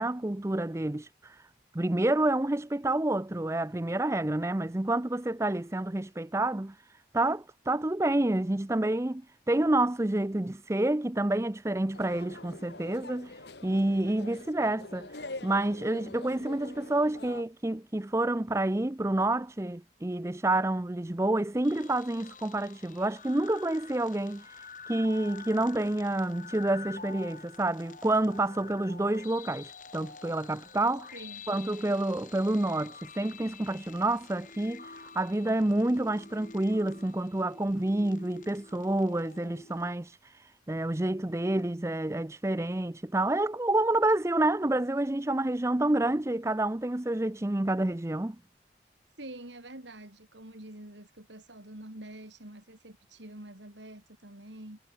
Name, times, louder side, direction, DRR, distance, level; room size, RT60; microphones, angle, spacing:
voice 1, 0.0-1.4 1.7-6.7 7.1-9.2 9.5-13.3 13.6-15.1 15.4-24.5 24.9-31.1 31.5-40.1 40.7-48.4, right 1 dB, 15° right, 0.5 m, -28 dB
sound 1, 11.9-17.4, left 2 dB, 65° left, 2.2 m, -45 dB
sound 2, 21.6-39.9, left 4 dB, 45° left, 6.2 m, -48 dB
voice 2, 31.1-31.5 49.2-54.8, right 1 dB, 80° right, 4.1 m, -46 dB
head